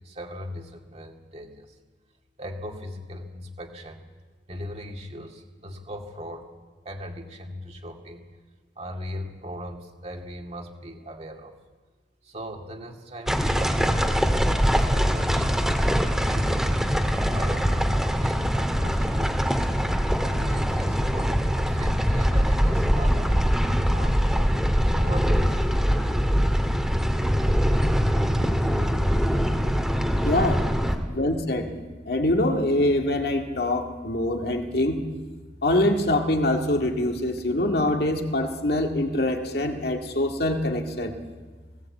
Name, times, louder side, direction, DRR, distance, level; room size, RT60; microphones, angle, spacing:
voice 1, 0.0-1.7 2.4-4.0 4.5-6.5 6.8-8.2 8.8-11.5 12.2-14.2 14.7-15.7 16.2-19.6 20.2-23.4 23.9-25.8, equal, 35° right, 2 dB, 2.3 m, -38 dB
sound 1, 13.3-31.0, equal, 5° right, 1.7 m, -23 dB
voice 2, 30.2-30.6 31.1-31.7 32.1-35.0 35.6-41.1, left 1 dB, 60° left, 3 dB, 2.0 m, -24 dB
18.5 x 17.5 x 8.5 m, 1.3 s
head